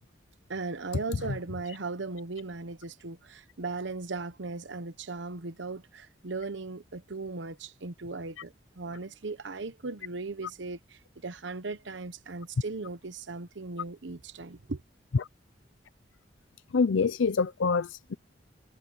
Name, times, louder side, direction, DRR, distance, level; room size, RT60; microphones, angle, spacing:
voice 1, 0.5-14.8, right 3 dB, 75° right, 1.0 m, -38 dB
voice 2, 16.7-18.1, left 5 dB, 85° left, 0.5 m, -26 dB
head